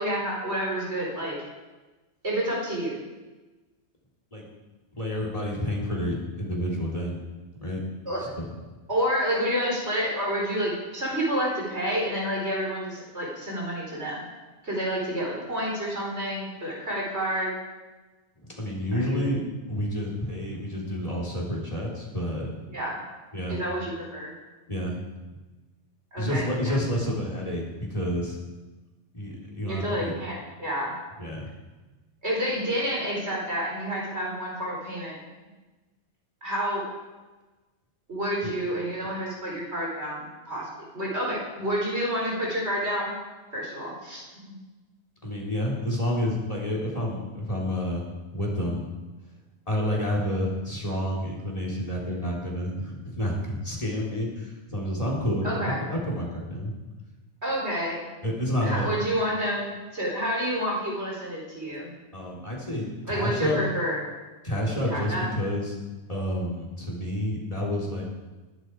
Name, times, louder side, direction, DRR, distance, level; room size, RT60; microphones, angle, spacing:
voice 1, 0.0-1.4 2.2-3.0 8.1-8.2 8.9-14.2 14.6-17.5 18.9-19.3 22.7-23.0 23.5-24.3 26.1-26.7 29.6-30.9 32.2-35.2 36.4-36.8 38.1-40.7 40.9-43.1 43.5-44.2 55.4-55.8 57.4-58.0 58.6-61.9 63.1-64.0 64.9-65.2, equal, 65° right, -4 dB, 5.0 m, -29 dB
voice 2, 5.0-7.1 7.6-7.8 8.2-8.5 18.4-19.4 19.7-22.5 23.3-23.6 24.7-25.0 26.2-27.6 27.9-28.4 29.1-30.1 31.2-31.5 45.2-48.1 48.3-48.9 49.7-56.7 58.2-58.9 62.1-63.6 64.4-65.8 66.1-68.0, equal, 30° left, -2 dB, 4.1 m, -29 dB
20.5 x 12.0 x 4.9 m, 1.2 s
omnidirectional pair, 1.2 m